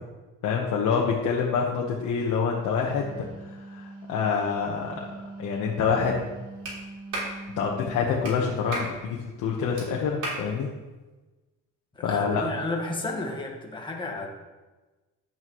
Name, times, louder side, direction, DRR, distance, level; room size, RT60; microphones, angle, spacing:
voice 1, 0.4-3.2 3.7-5.0 5.4-6.3 7.6-10.7 12.0-12.4, left 6 dB, 75° left, -2 dB, 1.2 m, -26 dB
Wind instrument woodwind instrument, 2.8-8.1, right 2 dB, 50° right, 2.2 m, -42 dB
Clapping, 6.6-6.8 7.1-7.3 8.2-8.4 8.7-8.9 9.8-9.9 10.2-10.4, right 2 dB, 70° right, 3.5 m, -32 dB
voice 2, 11.9-14.3, left 2 dB, 15° left, 0 dB, 1.6 m, -32 dB
10.5 x 8.7 x 3.1 m, 1.2 s
cardioid pair, 125°, 30 cm